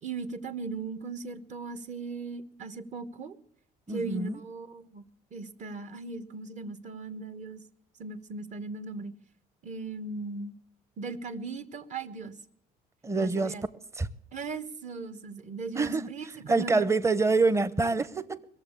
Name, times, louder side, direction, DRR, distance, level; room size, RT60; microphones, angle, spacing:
voice 1, 0.0-3.4 3.9-5.0 5.3-7.6 8.0-9.1 9.6-10.5 11.0-12.3 13.1-13.6 14.3-16.7, right 4 dB, 45° right, 1.2 m, -38 dB
voice 2, 3.9-4.4 13.0-13.5 13.9-14.1 15.7-18.5, right 3 dB, 15° right, 0.8 m, -26 dB
21.5 x 7.3 x 8.4 m
cardioid pair, 110°, 17 cm